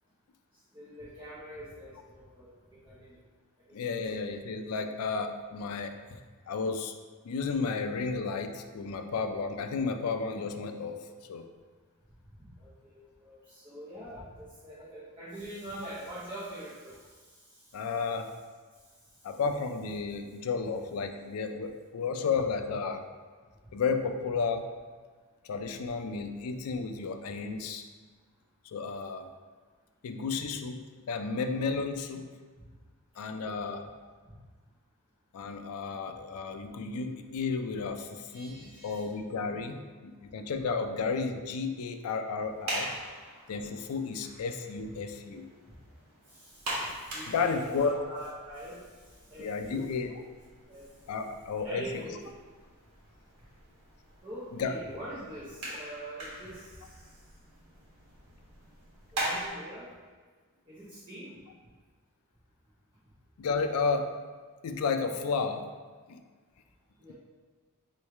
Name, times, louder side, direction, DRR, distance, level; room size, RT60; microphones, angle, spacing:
voice 1, 0.7-3.2 12.4-17.9 33.3-33.8 38.3-39.1 46.3-49.9 50.7-51.1 51.6-52.3 54.2-57.2 59.1-59.9 60.7-61.4 67.0-67.1, right 1 dB, 25° right, -9 dB, 0.8 m, -45 dB
voice 2, 3.7-5.9 6.5-6.9 7.2-11.0 11.3-11.5 17.7-18.3 19.2-23.0 23.7-24.7 25.4-27.9 28.6-29.3 30.0-32.3 33.2-33.9 35.3-42.9 43.5-45.5 47.3-47.9 49.4-50.1 51.1-52.2 54.5-54.7 63.4-64.1 64.6-65.7 66.1-66.2, left 4 dB, 75° left, 6 dB, 0.4 m, -32 dB
sound 1, 42.4-59.5, right 1 dB, 85° right, 1.3 m, -42 dB
3.2 x 3.1 x 4.6 m, 1.5 s
head